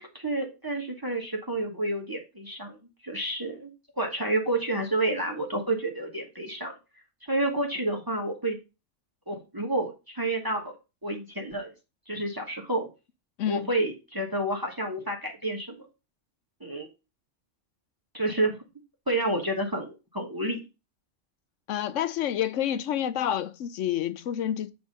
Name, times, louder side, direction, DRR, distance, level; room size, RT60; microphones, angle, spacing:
voice 1, 0.0-2.8 3.0-3.7 4.0-6.7 7.3-8.6 9.3-10.8 11.0-11.7 12.1-12.9 13.5-15.9 16.6-16.9 18.1-18.6 19.1-20.6, right 1 dB, 20° right, 1.3 m, -29 dB
voice 2, 21.7-24.7, left 10 dB, 80° left, 1.0 m, -28 dB
8.0 x 3.6 x 5.2 m
omnidirectional pair, 1.3 m